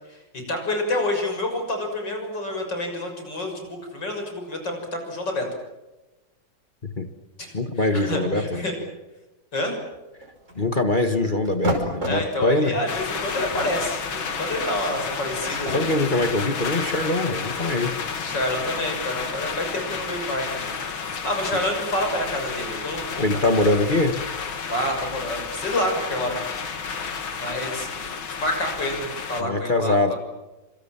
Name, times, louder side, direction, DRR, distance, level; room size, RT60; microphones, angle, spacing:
voice 1, 0.5-4.8 5.1-5.5 7.4-7.5 7.9-8.8 9.5-9.8 12.1-16.0 18.1-20.7 21.2-23.4 24.7-26.4 27.4-30.2, left 1 dB, 60° left, 4 dB, 7.2 m, -28 dB
voice 2, 7.5-8.6 10.5-12.8 15.7-18.0 23.2-24.2 29.4-30.1, left 2 dB, 25° left, 7 dB, 1.6 m, -23 dB
sound 1, 9.9-10.8 11.4-12.3 13.0-13.2 13.5-15.7, equal, 35° right, 5.6 m, -31 dB
sound 2, 12.9-29.4, left 5 dB, 80° left, 2.9 m, -31 dB
27.5 x 26.0 x 7.5 m, 1.1 s
omnidirectional pair, 2.2 m